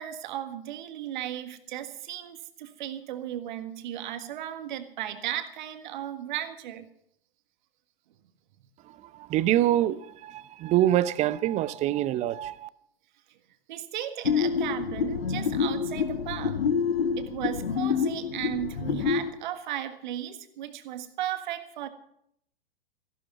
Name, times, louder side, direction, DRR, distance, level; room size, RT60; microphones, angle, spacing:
voice 1, 0.0-6.9 8.6-8.7 13.7-16.6 17.2-21.9, right 11 dB, 55° right, 1.6 m, -35 dB
voice 2, 8.8-12.7, right 13 dB, 25° right, 0.6 m, -25 dB
sound 1, 14.2-19.3, left 6 dB, 75° left, 1.5 m, -27 dB
15.0 x 12.0 x 5.8 m
figure-of-eight pair, 105°, 29 cm